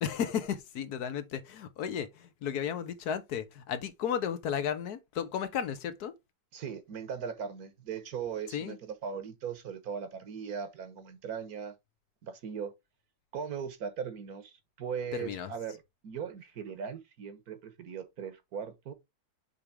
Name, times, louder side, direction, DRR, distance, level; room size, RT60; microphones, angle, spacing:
voice 1, 0.0-6.1 8.5-8.8 15.1-15.5, left 8 dB, 60° left, 1.3 m, -34 dB
voice 2, 6.5-11.8 12.2-12.7 13.3-18.9, right 7 dB, 55° right, 1.5 m, -39 dB
7.1 x 3.4 x 4.7 m
omnidirectional pair, 2.0 m